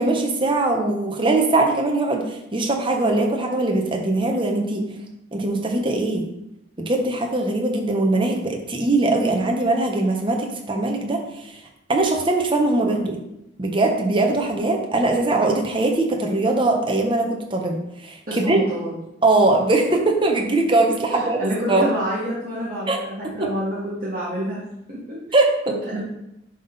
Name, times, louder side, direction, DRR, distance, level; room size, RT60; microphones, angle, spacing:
voice 1, 0.0-4.8 5.3-6.3 6.8-11.6 11.9-13.2 13.6-18.6 19.2-21.4 21.7-21.8 22.9-23.0 23.2-23.5 25.3-25.7, right 2 dB, 25° right, 2 dB, 1.0 m, -21 dB
voice 2, 18.3-19.0 21.1-25.2 25.9-26.0, equal, 45° right, -8 dB, 2.0 m, -28 dB
11.0 x 3.7 x 4.1 m, 0.86 s
head